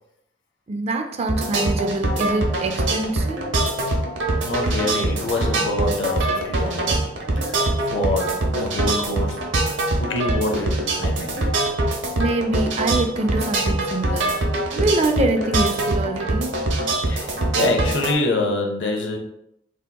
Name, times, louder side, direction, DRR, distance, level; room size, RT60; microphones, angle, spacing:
voice 1, 0.7-3.4 12.2-14.3 14.7-16.5, right 2 dB, 35° right, 5 dB, 0.4 m, -24 dB
sound 1, 1.3-18.1, right 2 dB, 80° right, 0.7 m, -23 dB
voice 2, 4.4-7.1 7.4-11.3 17.1-19.2, left 2 dB, 85° left, 2 dB, 0.6 m, -26 dB
3.5 x 2.7 x 2.2 m, 0.80 s
head